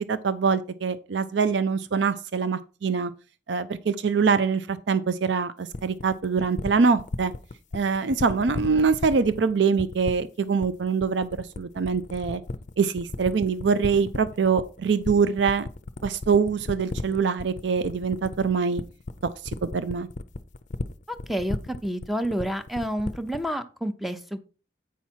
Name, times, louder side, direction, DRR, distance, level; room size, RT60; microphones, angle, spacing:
voice 1, 0.1-3.1 3.5-7.3 7.7-12.4 12.8-15.7 16.0-18.8 19.6-20.1, right 5 dB, 70° right, 0.5 m, -24 dB
sound 1, 5.7-23.5, left 3 dB, 45° left, 0.5 m, -34 dB
voice 2, 21.1-21.6 21.8-24.4, equal, ahead, 0.6 m, -29 dB
8.4 x 5.6 x 4.5 m
head